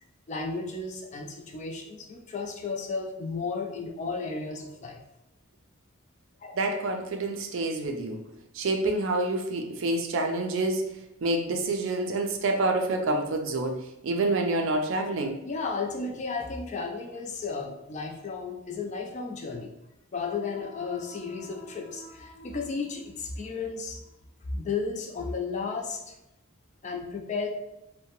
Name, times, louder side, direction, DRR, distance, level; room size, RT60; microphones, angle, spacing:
voice 1, 0.3-5.0 6.4-6.5 15.4-19.7 20.1-24.0 24.5-26.1 26.8-27.5, left 4 dB, 35° left, 2 dB, 0.3 m, -33 dB
voice 2, 6.5-8.2 8.5-10.9 11.2-15.4, right 2 dB, 60° right, 4 dB, 0.4 m, -27 dB
2.7 x 2.1 x 2.9 m, 0.87 s
head